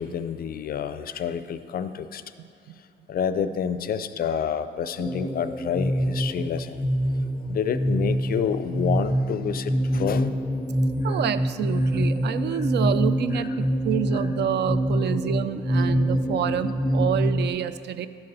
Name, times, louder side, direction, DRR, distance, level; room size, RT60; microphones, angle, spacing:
voice 1, 0.0-2.2 3.1-6.8 7.5-10.3 11.1-11.2, left 7 dB, 50° left, 12 dB, 0.4 m, -28 dB
voice 2, 2.4-2.8 11.0-18.1, right 9 dB, 60° right, 13 dB, 0.4 m, -28 dB
sound 1, 5.0-17.5, equal, 5° right, 0.6 m, -25 dB
11.5 x 4.0 x 5.4 m, 2.4 s
cardioid pair, 90°, 20 cm